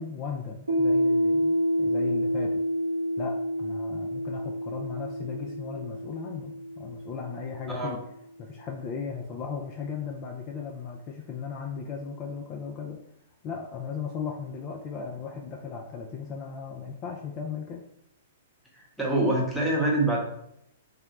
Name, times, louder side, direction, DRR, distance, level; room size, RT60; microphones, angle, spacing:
voice 1, 0.0-2.6 3.2-8.0 8.4-13.1 13.4-17.8, left 6 dB, 30° left, 1 dB, 0.3 m, -36 dB
Piano, 0.7-7.9, equal, 80° right, 0.6 m, -28 dB
voice 2, 19.0-20.2, right 2 dB, ahead, -3 dB, 0.8 m, -25 dB
3.7 x 2.1 x 2.9 m, 0.75 s
figure-of-eight pair, 105°, 0 cm